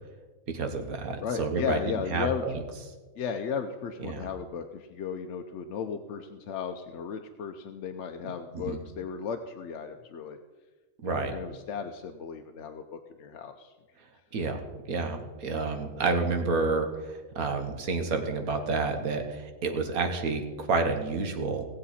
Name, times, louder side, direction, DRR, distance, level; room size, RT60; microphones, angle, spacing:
voice 1, 0.5-1.8 2.1-2.6 4.0-4.3 8.5-8.8 11.0-11.3 14.3-14.6 14.9-21.7, right 4 dB, 75° right, 5 dB, 1.6 m, -29 dB
voice 2, 1.2-2.5 3.2-10.4 11.0-13.7, left 6 dB, 65° left, 6 dB, 0.8 m, -35 dB
18.0 x 7.6 x 4.2 m, 1.3 s
omnidirectional pair, 1.6 m